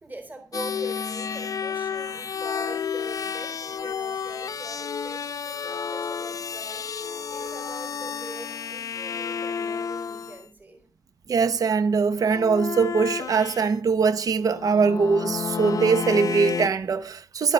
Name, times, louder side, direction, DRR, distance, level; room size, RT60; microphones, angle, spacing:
voice 1, 0.0-10.8, right 2 dB, 25° right, 3.6 m, -42 dB
sound 1, 0.5-10.4 12.2-13.7 14.4-16.7, left 6 dB, 65° left, 0.5 m, -31 dB
voice 2, 11.3-17.5, right 5 dB, 70° right, 0.8 m, -22 dB
12.5 x 9.8 x 5.3 m
wide cardioid pair, 110°, 6 cm